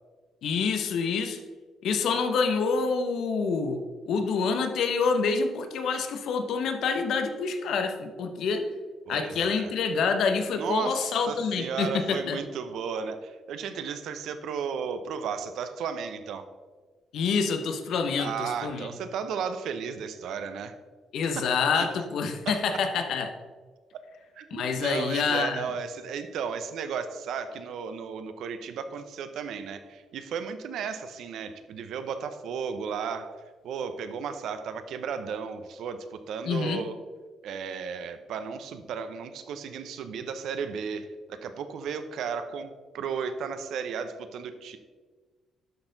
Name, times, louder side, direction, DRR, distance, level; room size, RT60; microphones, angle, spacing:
voice 1, 0.4-1.4 1.8-8.7 9.1-12.4 17.1-18.9 21.1-23.3 24.5-25.7 36.4-36.8, left 5 dB, 75° left, 6 dB, 0.8 m, -27 dB
voice 2, 9.1-9.7 10.5-16.5 18.2-20.8 21.2-21.9 22.5-22.6 24.4-33.3 33.6-36.9 37.4-44.8, right 6 dB, 75° right, 10 dB, 0.7 m, -34 dB
11.5 x 4.3 x 3.9 m, 1.4 s
cardioid pair, 90°, 0 cm